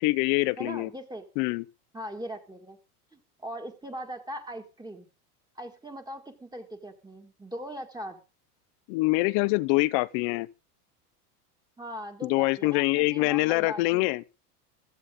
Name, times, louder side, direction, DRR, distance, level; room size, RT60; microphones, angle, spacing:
voice 1, 0.0-0.9 1.4-1.6 8.9-10.5 12.2-14.2, left 23 dB, 55° left, 0.9 m, -25 dB
voice 2, 0.6-1.3 1.9-2.8 3.1-5.1 5.6-8.2 11.8-14.1, equal, 10° right, 1.9 m, -40 dB
15.5 x 12.5 x 3.8 m
hypercardioid pair, 100°, 46 cm